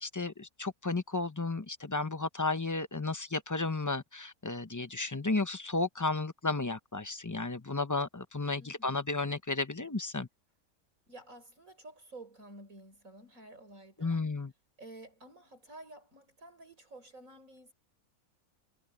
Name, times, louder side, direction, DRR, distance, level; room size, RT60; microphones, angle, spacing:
voice 1, 0.0-10.3 14.0-14.5, left 3 dB, 20° left, 0.5 m, -33 dB
voice 2, 8.6-8.9 11.1-14.2 14.8-17.7, right 2 dB, 60° right, 5.8 m, -51 dB
omnidirectional pair, 1.6 m